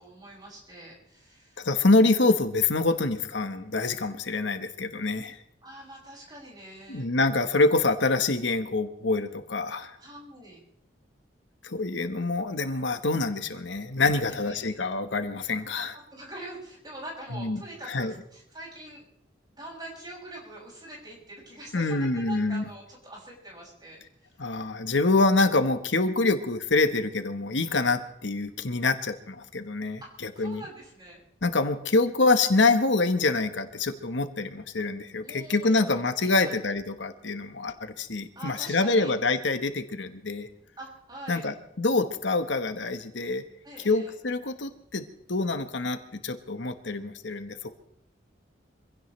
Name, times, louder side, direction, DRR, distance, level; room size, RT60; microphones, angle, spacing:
voice 1, 0.0-1.7 5.6-7.1 10.0-10.6 14.3-14.8 16.1-19.0 19.5-24.3 30.0-31.2 35.2-36.5 38.3-39.1 40.8-41.5 43.6-44.1, right 1 dB, 25° right, -3 dB, 6.5 m, -44 dB
voice 2, 1.6-5.4 6.9-10.0 11.6-16.0 17.3-17.6 17.9-18.1 21.7-22.6 24.4-30.0 30.4-30.6 31.4-40.5 41.3-43.4 43.8-45.0 45.3-47.7, left 3 dB, 80° left, 8 dB, 1.2 m, -26 dB
25.0 x 16.5 x 3.3 m, 0.71 s
head